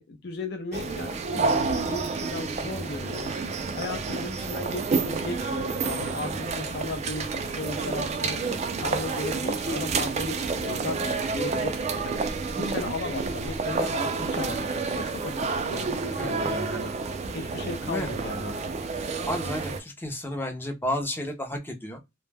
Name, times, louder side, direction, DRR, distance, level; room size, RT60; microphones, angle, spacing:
voice 1, 0.0-3.3 3.8-8.4 8.8-12.2 12.6-16.9 17.3-18.6, left 2 dB, 60° left, 0.6 m, -36 dB
sound 1, 0.7-19.8, right 4 dB, 35° right, 0.3 m, -29 dB
voice 2, 19.2-22.0, left 1 dB, 10° left, 0.5 m, -32 dB
2.2 x 2.0 x 3.2 m
head